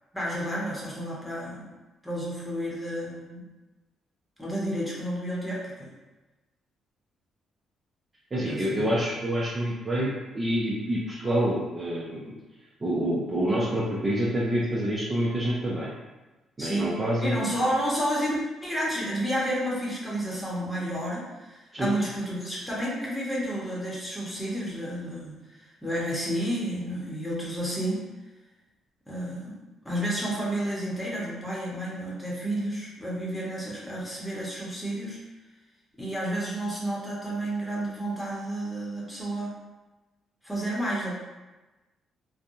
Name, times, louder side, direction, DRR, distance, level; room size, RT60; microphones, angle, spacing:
voice 1, 0.1-1.6 2.0-3.4 4.4-5.9 8.5-8.9 16.6-16.9 17.2-28.0 29.1-29.6 29.8-35.2 36.0-39.5 40.4-41.1, right 1 dB, 5° left, -6 dB, 1.1 m, -31 dB
voice 2, 8.3-12.3 12.8-15.9 16.6-17.4 21.7-21.9, right 1 dB, 30° right, -7 dB, 0.7 m, -27 dB
3.4 x 2.2 x 2.6 m, 1.1 s
cardioid pair, 90°, 0 cm